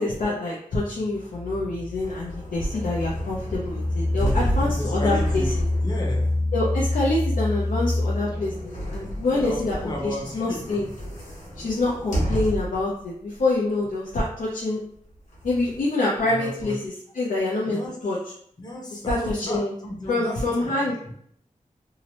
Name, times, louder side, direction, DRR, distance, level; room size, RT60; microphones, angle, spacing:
voice 1, 0.0-5.6 6.5-10.9 11.6-14.8 15.4-18.2 19.1-19.7 20.1-20.9, left 2 dB, 90° left, -5 dB, 0.5 m, -26 dB
sound 1, 1.0-8.8, left 2 dB, 35° right, 0.7 m, -27 dB
sound 2, 1.9-12.9 13.4-13.5 14.9-15.8, right 1 dB, 65° left, 1.2 m, -32 dB
voice 2, 4.1-5.5 5.8-6.4 9.3-10.9 16.2-16.8 17.7-17.9 18.6-20.7, left 1 dB, 30° left, -2 dB, 0.6 m, -33 dB
2.8 x 2.0 x 2.8 m, 0.66 s
wide cardioid pair, 85°, 13 cm